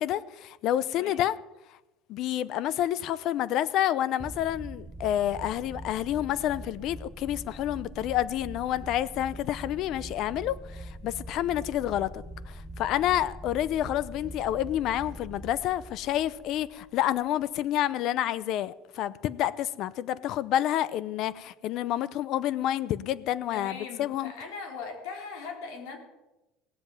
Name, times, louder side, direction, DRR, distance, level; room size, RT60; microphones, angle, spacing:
voice 1, 0.0-1.3 2.1-24.3, left 12 dB, 55° left, 0.7 m, -29 dB
sound 1, 4.2-17.5, right 1 dB, 10° right, 0.6 m, -43 dB
voice 2, 23.5-26.0, left 5 dB, 85° left, 4.1 m, -40 dB
18.0 x 7.7 x 9.1 m
cardioid pair, 145°, 0 cm